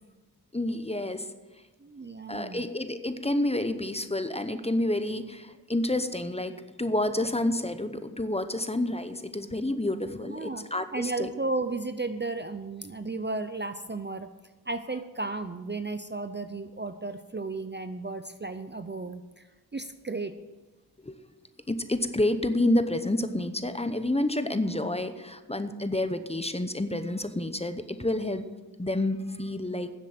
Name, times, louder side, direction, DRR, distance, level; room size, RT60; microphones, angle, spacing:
voice 1, 0.5-1.3 2.3-11.3 21.0-21.2 21.7-28.4 28.8-29.9, left 1 dB, 15° left, 10 dB, 0.8 m, -29 dB
voice 2, 1.8-2.6 10.2-10.7 10.9-14.3 14.7-19.5 19.7-20.3, right 3 dB, 30° right, 10 dB, 0.5 m, -34 dB
10.5 x 7.5 x 7.6 m, 1.2 s
wide cardioid pair, 65°, 38 cm